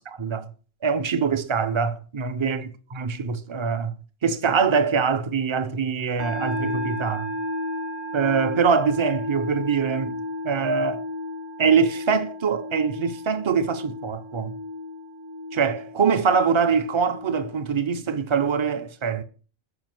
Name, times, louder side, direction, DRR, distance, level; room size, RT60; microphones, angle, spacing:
voice 1, 0.2-0.5 0.8-3.9 4.2-7.3 8.1-10.2 10.4-11.0 11.6-14.5 15.5-19.2, right 5 dB, 30° right, 0.6 m, -23 dB
sound 1, 6.2-17.6, left 1 dB, 75° right, 4.7 m, -34 dB
9.6 x 5.6 x 7.7 m
omnidirectional pair, 1.4 m